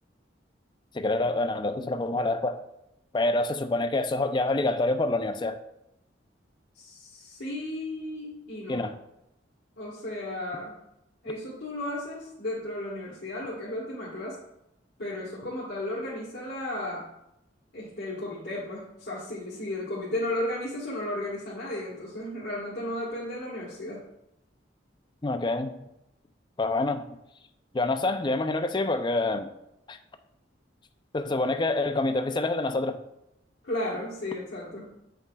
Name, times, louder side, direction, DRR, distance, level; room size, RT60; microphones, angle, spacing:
voice 1, 0.9-2.6 3.1-5.6 8.7-8.9 25.2-25.8 26.6-27.0 27.7-29.5 29.9-30.0 31.1-33.0, left 2 dB, 25° left, 8 dB, 0.4 m, -26 dB
voice 2, 6.7-8.9 9.8-10.8 11.2-14.4 15.0-17.1 17.7-24.0 33.6-34.9, left 1 dB, 70° left, -7 dB, 1.4 m, -34 dB
7.8 x 5.7 x 2.3 m, 0.85 s
head